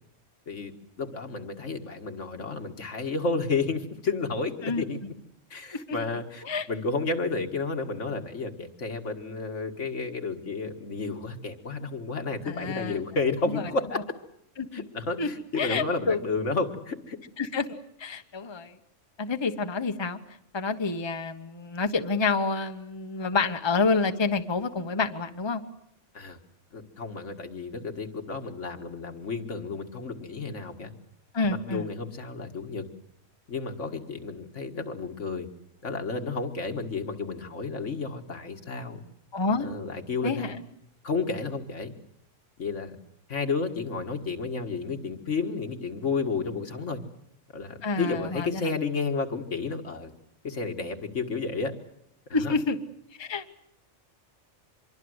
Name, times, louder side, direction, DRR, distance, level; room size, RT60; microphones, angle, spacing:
voice 1, 1.0-5.0 5.5-14.0 14.7-17.2 26.1-26.4 26.7-30.9 31.6-32.8 33.5-35.5 35.8-39.0 39.6-40.5 41.0-41.9 42.6-43.0 43.3-47.0 47.5-50.1 50.4-51.7 52.3-52.5, left 4 dB, 75° left, 5 dB, 2.1 m, -31 dB
voice 2, 12.5-13.0 13.4-13.6 14.6-14.8 15.2-15.3 15.6-16.2 17.4-18.7 19.2-20.2 20.5-25.6 31.3-31.9 39.3-39.7 40.2-40.6 47.8-48.7 52.3-52.8 53.2-53.4, left 4 dB, 25° left, 7 dB, 1.0 m, -28 dB
25.0 x 22.5 x 8.0 m, 0.77 s
omnidirectional pair, 1.3 m